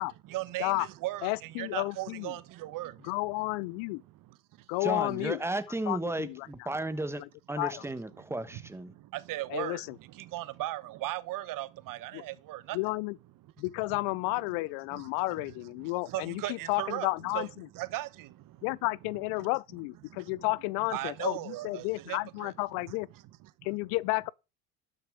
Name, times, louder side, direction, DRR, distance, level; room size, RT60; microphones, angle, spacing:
voice 1, 0.2-3.1 4.0-4.7 8.2-8.3 8.5-8.6 8.9-12.8 13.9-14.0 14.9-15.5 15.8-17.1 17.3-18.7 19.4-19.5 20.1-20.5 20.9-23.8, right 16 dB, 55° right, 1.1 m, -38 dB
voice 2, 1.2-2.3 3.0-4.0 4.7-5.4 5.9-6.7 7.2-7.3 7.6-7.8 9.5-9.9 12.1-12.2 12.7-13.2 13.6-17.7 18.6-23.1 23.6-24.3, left 23 dB, 70° left, 0.5 m, -32 dB
voice 3, 4.8-7.2 7.5-8.9, right 2 dB, 5° right, 1.2 m, -34 dB
12.0 x 6.7 x 4.9 m
supercardioid pair, 95°, 39 cm